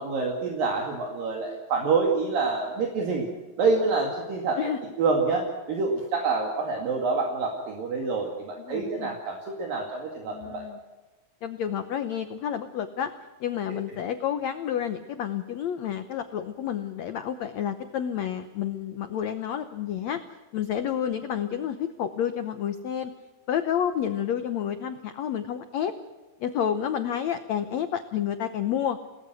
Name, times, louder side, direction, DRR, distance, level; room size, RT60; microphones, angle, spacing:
voice 1, 0.0-3.3 3.6-4.7 5.0-10.7, right 4 dB, 65° right, 1 dB, 4.0 m, -27 dB
voice 2, 8.6-9.2 10.3-10.8 11.4-13.1 13.4-20.2 20.5-23.1 23.5-25.9 26.4-29.0, left 9 dB, 90° left, 9 dB, 1.5 m, -30 dB
30.0 x 19.0 x 6.3 m, 1.2 s
omnidirectional pair, 4.5 m